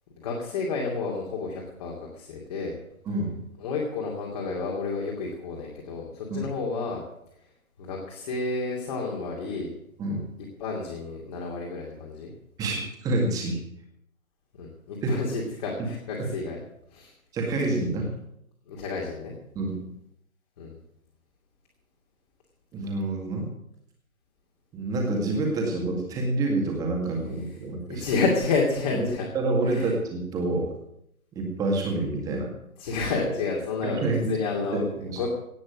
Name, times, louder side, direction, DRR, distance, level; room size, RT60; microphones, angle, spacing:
voice 1, 0.2-2.8 3.6-7.0 7.8-9.7 10.6-12.3 14.6-16.6 16.9-17.1 18.7-19.3 20.6-20.8 27.9-29.3 29.6-29.9 32.8-35.3, left 4 dB, 25° left, -2 dB, 2.6 m, -30 dB
voice 2, 12.6-13.6 15.0-15.1 15.8-15.9 16.2-16.3 17.3-18.1 19.6-19.8 22.7-23.5 24.7-28.1 28.9-29.1 29.3-30.7 31.4-32.5 33.8-34.4 34.7-35.2, right 2 dB, 10° right, 1 dB, 2.1 m, -27 dB
17.5 x 6.3 x 8.9 m, 0.76 s
hypercardioid pair, 160°, 43 cm